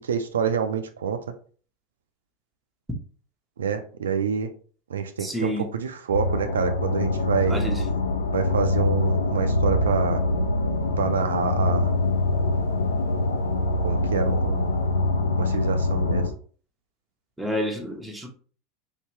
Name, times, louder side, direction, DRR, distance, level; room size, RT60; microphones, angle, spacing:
voice 1, 0.1-1.2 3.6-4.5 4.9-7.6 8.3-10.2 11.0-11.9 13.8-14.7 15.4-16.2, right 6 dB, 80° right, 0.4 m, -27 dB
voice 2, 5.2-5.7 7.5-7.8 17.4-18.3, equal, 5° right, 1.0 m, -29 dB
sound 1, 6.1-16.3, left 2 dB, 85° left, 0.5 m, -24 dB
3.5 x 2.8 x 3.1 m
hypercardioid pair, 85°, 0 cm